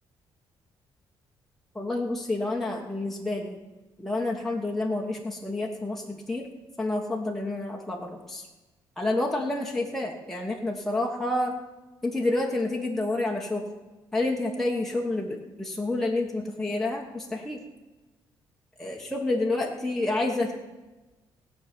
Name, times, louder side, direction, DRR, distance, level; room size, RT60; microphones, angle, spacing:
voice 1, 1.7-3.6 4.0-6.5 6.8-8.5 9.0-11.5 12.0-13.6 14.1-17.6 18.8-20.6, left 2 dB, 5° left, -2 dB, 1.5 m, -29 dB
16.5 x 5.6 x 9.2 m, 1.1 s
cardioid pair, 110°, 9 cm